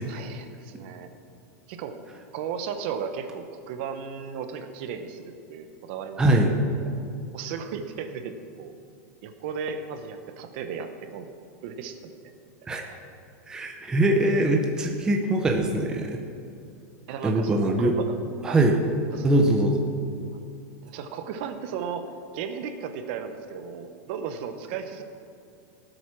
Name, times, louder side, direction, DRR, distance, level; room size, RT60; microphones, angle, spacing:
voice 1, 0.1-1.1 1.7-2.0 2.3-7.0 7.3-8.7 9.2-11.3 11.6-12.3 12.9-13.0 17.1-18.0 18.5-18.6 19.1-19.3 20.8-25.0, right 6 dB, 40° right, 8 dB, 0.9 m, -35 dB
voice 2, 6.2-6.5 12.7-12.8 13.5-16.2 17.2-17.9 18.4-18.8 19.2-19.9, right 1 dB, 10° right, 1 dB, 0.7 m, -22 dB
17.5 x 8.0 x 6.1 m, 2.4 s
supercardioid pair, 175°, 9 cm